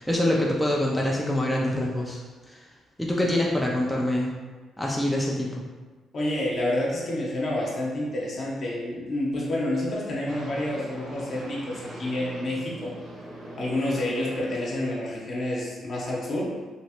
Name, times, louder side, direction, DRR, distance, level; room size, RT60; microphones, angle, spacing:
voice 1, 0.0-2.2 2.5-2.6 3.0-4.3 4.8-5.6, left 1 dB, 5° left, -3 dB, 0.4 m, -25 dB
voice 2, 6.1-13.0 13.6-16.5, left 1 dB, 50° left, -4 dB, 0.8 m, -28 dB
sound 1, 10.3-15.3, right 1 dB, 55° right, 1.0 m, -42 dB
3.0 x 2.3 x 2.8 m, 1.3 s
cardioid pair, 90°, 0 cm